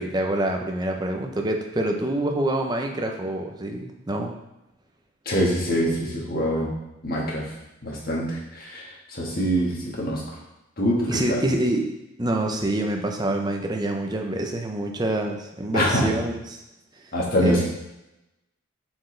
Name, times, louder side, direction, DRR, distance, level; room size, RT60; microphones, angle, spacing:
voice 1, 0.0-4.3 11.1-11.9 12.2-16.6 17.4-17.7, right 1 dB, 20° right, 3 dB, 0.6 m, -26 dB
voice 2, 5.2-6.7 7.0-7.4 7.8-10.2 10.8-11.4 15.7-16.1 17.1-17.7, equal, 45° left, -3 dB, 1.6 m, -24 dB
7.6 x 4.6 x 3.3 m, 0.92 s
head